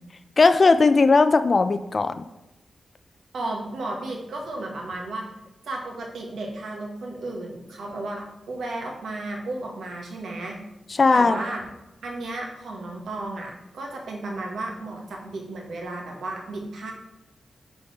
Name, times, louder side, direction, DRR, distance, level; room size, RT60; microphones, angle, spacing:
voice 1, 0.4-2.2 11.0-11.4, left 3 dB, 40° left, 10 dB, 0.3 m, -18 dB
voice 2, 3.3-5.3 5.6-10.6 11.1-11.7 12.0-16.9, right 2 dB, 85° right, 0 dB, 1.3 m, -33 dB
5.6 x 3.9 x 4.8 m, 0.95 s
wide cardioid pair, 105°, 0 cm